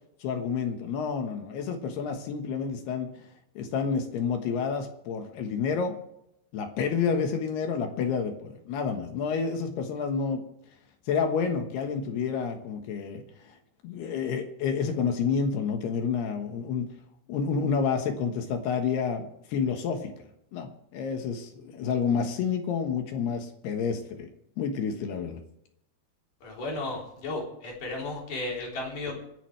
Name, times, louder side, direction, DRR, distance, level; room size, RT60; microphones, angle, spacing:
voice 1, 0.2-3.1 3.6-6.0 6.5-10.4 11.1-13.6 13.8-16.9 17.3-20.1 20.5-24.3 24.6-25.4, left 6 dB, 65° left, 5 dB, 2.9 m, -29 dB
voice 2, 26.4-29.1, left 2 dB, 45° left, -2 dB, 4.8 m, -34 dB
26.5 x 11.0 x 3.3 m, 0.78 s
omnidirectional pair, 5.9 m